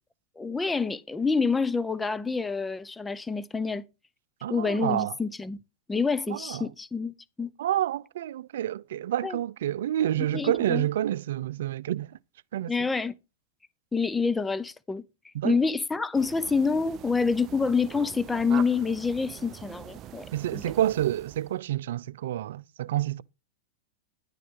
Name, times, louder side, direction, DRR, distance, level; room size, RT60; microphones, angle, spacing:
voice 1, 0.4-3.8 4.5-5.6 5.9-7.5 9.2-9.4 10.3-10.9 12.7-13.1 13.9-15.0 15.4-20.3 20.5-20.6, left 4 dB, 10° left, 0.7 m, -27 dB
voice 2, 4.4-5.1 6.3-6.7 7.6-12.1 12.5-12.7 15.3-15.6 20.3-23.2, right 12 dB, 75° right, 0.5 m, -28 dB
sound 1, 16.1-21.6, right 11 dB, 40° right, 0.7 m, -43 dB
11.0 x 9.3 x 3.8 m
hypercardioid pair, 115°, 0 cm